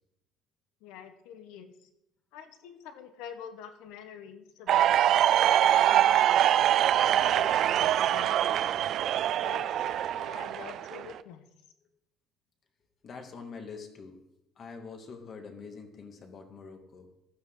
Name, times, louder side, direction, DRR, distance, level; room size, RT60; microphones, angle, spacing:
voice 1, 0.8-1.9 2.3-6.4 7.0-8.7 9.4-11.4, left 8 dB, 90° left, 8 dB, 1.4 m, -46 dB
sound 1, 4.7-11.2, right 11 dB, 50° right, 0.4 m, -24 dB
voice 2, 13.0-14.2 14.6-17.1, left 5 dB, 35° left, 5 dB, 2.0 m, -45 dB
15.5 x 12.5 x 3.9 m, 0.85 s
cardioid pair, 155°, 0 cm